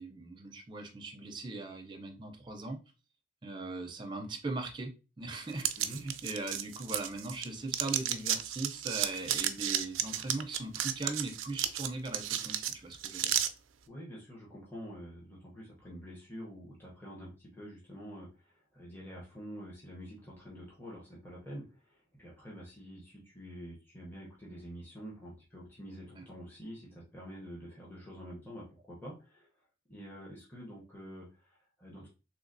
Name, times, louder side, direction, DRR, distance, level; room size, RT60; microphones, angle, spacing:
voice 1, 0.0-2.8 3.4-13.3, right 2 dB, 25° right, 4 dB, 0.6 m, -40 dB
sound 1, 5.6-7.4 7.7-13.5, right 11 dB, 80° right, 0.4 m, -33 dB
voice 2, 13.9-29.5 29.9-32.1, equal, 10° left, -5 dB, 0.8 m, -47 dB
3.2 x 3.1 x 2.6 m, 0.32 s
head